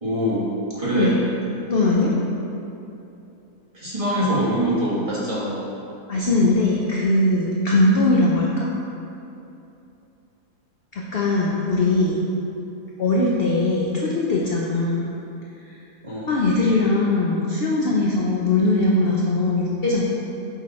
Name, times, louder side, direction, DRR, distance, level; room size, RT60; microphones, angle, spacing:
voice 1, 0.0-0.5 0.7-1.1 3.7-5.6 16.0-16.3, equal, 20° right, -9 dB, 1.7 m, -23 dB
voice 2, 1.7-2.1 6.1-8.7 10.9-12.2 13.0-15.1 16.3-20.0, left 2 dB, 60° left, -3 dB, 0.6 m, -20 dB
8.5 x 4.0 x 4.2 m, 2.8 s
omnidirectional pair, 1.7 m